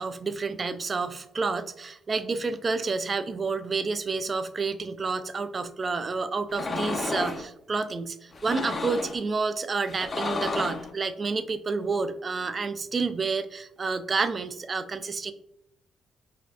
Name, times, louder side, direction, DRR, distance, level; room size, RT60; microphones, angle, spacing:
voice 1, 0.0-15.3, right 4 dB, 35° right, 11 dB, 0.3 m, -29 dB
sound 1, 6.5-7.4 8.3-9.2 9.9-10.9, left 3 dB, 40° left, 0.4 m, -31 dB
4.0 x 2.3 x 2.7 m, 0.76 s
cardioid pair, 90°, 0 cm